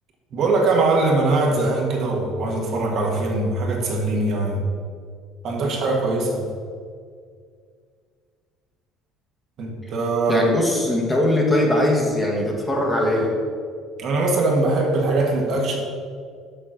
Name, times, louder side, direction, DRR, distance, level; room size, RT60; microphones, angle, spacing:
voice 1, 0.3-4.6 5.4-6.4 9.6-10.4 14.0-15.8, right 2 dB, 50° right, 0 dB, 1.4 m, -21 dB
voice 2, 10.3-13.4, left 1 dB, 15° left, -1 dB, 1.3 m, -21 dB
6.8 x 4.4 x 6.3 m, 2.1 s
cardioid pair, 120°, 0 cm